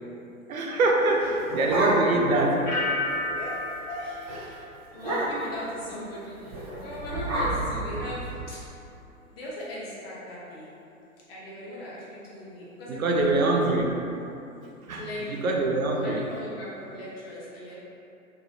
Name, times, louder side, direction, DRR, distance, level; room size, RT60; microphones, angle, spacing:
voice 1, 0.5-2.7 12.9-13.9 14.9-15.0 15.4-16.2, right 2 dB, 75° right, 0 dB, 0.5 m, -24 dB
voice 2, 1.1-1.9 3.3-3.6 3.9-4.7 4.9-8.6 9.3-10.7 11.3-13.6 14.9-15.4 15.9-17.8, left 1 dB, 45° left, -7 dB, 0.9 m, -38 dB
sound 1, 1.1-2.4 2.7-2.8 3.1-3.4 3.8-4.0 4.3-4.4 4.9-5.6 6.5-8.5, right 1 dB, 25° right, 0.5 m, -30 dB
sound 2, 2.7-5.5 5.8-6.3, left 2 dB, 75° left, 0.8 m, -33 dB
2.9 x 2.4 x 2.5 m, 2.7 s
figure-of-eight pair, 115°, 42 cm